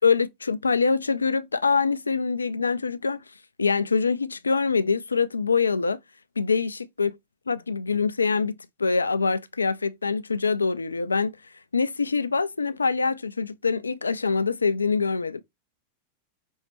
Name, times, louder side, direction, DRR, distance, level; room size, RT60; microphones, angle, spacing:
voice 1, 0.0-3.2 3.6-6.0 6.4-7.1 7.5-11.3 11.7-15.4, left 4 dB, 75° left, 0.3 m, -24 dB
5.4 x 3.1 x 3.0 m
figure-of-eight pair, 90°, 0 cm